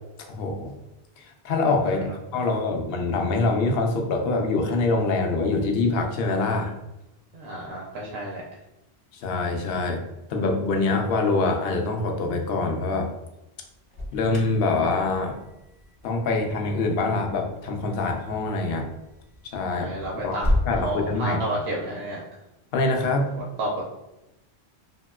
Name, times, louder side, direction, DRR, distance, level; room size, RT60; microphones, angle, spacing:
voice 1, 0.3-0.7 1.2-2.0 2.3-6.7 9.1-10.0 10.3-13.1 14.1-15.4 16.0-18.9 19.4-19.9 20.2-20.4 20.7-21.4 22.7-23.3, left 3 dB, 70° left, 3 dB, 0.7 m, -24 dB
voice 2, 7.3-8.4 19.7-20.5 20.8-22.2 23.6-23.8, right 1 dB, 75° right, -3 dB, 0.8 m, -31 dB
Alarm, 13.7-20.7, left 1 dB, 35° left, 0.5 m, -33 dB
2.9 x 2.8 x 2.3 m, 0.94 s
omnidirectional pair, 1.1 m